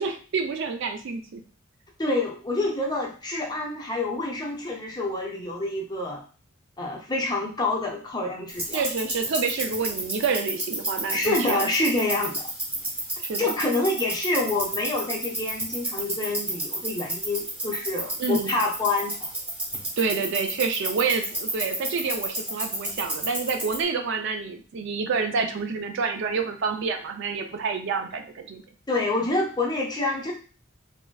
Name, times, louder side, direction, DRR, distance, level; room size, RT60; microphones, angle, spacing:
voice 1, 0.0-1.4 8.7-11.7 13.2-13.5 18.2-18.6 20.0-28.6, right 5 dB, 55° right, 5 dB, 0.4 m, -28 dB
voice 2, 2.0-6.2 6.8-8.8 11.1-12.5 13.4-19.3 28.9-30.3, left 2 dB, 20° left, -1 dB, 0.6 m, -27 dB
sound 1, 8.5-23.8, right 1 dB, 10° right, 0.9 m, -32 dB
3.1 x 2.5 x 2.2 m, 0.38 s
head